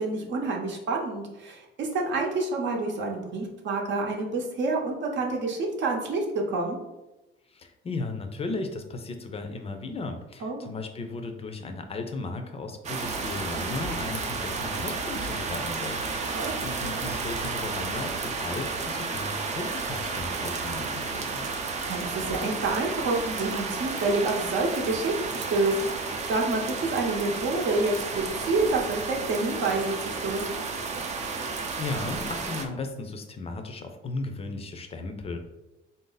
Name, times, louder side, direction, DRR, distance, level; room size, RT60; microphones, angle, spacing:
voice 1, 0.0-6.8 10.4-10.7 16.3-16.6 21.9-30.6, right 3 dB, 60° right, 0 dB, 0.8 m, -28 dB
voice 2, 7.5-21.5 31.4-35.4, left 3 dB, 30° left, 6 dB, 0.5 m, -36 dB
sound 1, 12.8-32.6, right 4 dB, 35° right, 0.5 m, -32 dB
4.0 x 2.6 x 3.8 m, 0.99 s
cardioid pair, 150°, 21 cm